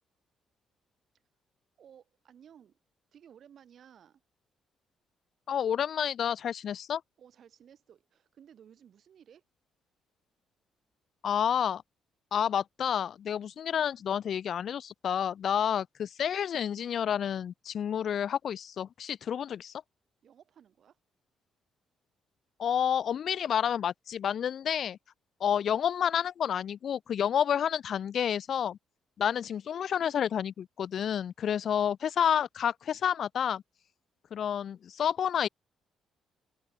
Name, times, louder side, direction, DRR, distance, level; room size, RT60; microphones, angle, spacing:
voice 1, 1.8-2.8 3.1-4.2 7.2-9.4 20.2-21.0 31.5-31.6, right 9 dB, 60° right, 3.8 m, -57 dB
voice 2, 5.5-7.0 11.2-11.8 12.3-19.8 22.6-25.0 25.4-28.8 29.2-33.6 34.3-35.5, left 8 dB, 60° left, 0.6 m, -29 dB
open air
cardioid pair, 90°, 0 cm